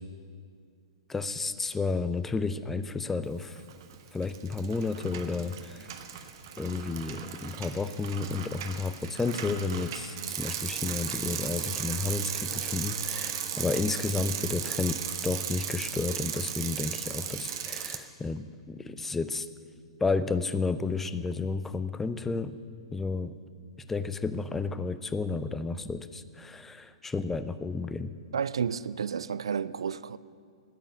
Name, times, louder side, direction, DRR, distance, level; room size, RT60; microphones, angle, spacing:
voice 1, 1.1-3.6 4.1-5.9 6.6-19.5 20.0-22.6 22.9-23.4 23.9-28.1, left 4 dB, 10° left, 0.5 m, -32 dB
Bicycle, 3.6-3.9 4.2-18.0, right 9 dB, 45° right, 1.0 m, -36 dB
voice 2, 28.3-30.2, right 7 dB, 65° right, 0.3 m, -31 dB
9.6 x 8.8 x 10.0 m
figure-of-eight pair, 110°, 3 cm